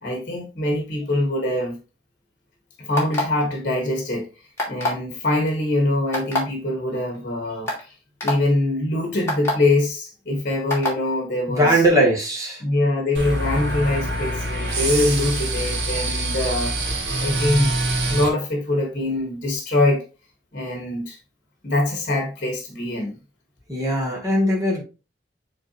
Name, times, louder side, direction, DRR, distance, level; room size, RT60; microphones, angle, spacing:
voice 1, 0.0-1.8 2.8-4.3 4.7-7.9 8.2-11.8 12.6-16.7 17.2-17.7 18.1-20.0 20.5-21.2 21.6-23.2, left 1 dB, 50° left, 1.5 m, -23 dB
sound 1, 2.9-3.4 4.6-5.0 6.1-6.4 7.1-7.2 7.7-7.8 8.2-8.3 9.3-9.5 10.7-11.0, left 1 dB, 15° left, 2.3 m, -23 dB
voice 2, 11.5-12.6 23.7-24.8, right 1 dB, 20° right, 2.4 m, -20 dB
sound 2, 13.1-18.3, right 1 dB, 65° right, 2.3 m, -25 dB
8.8 x 3.8 x 2.9 m
head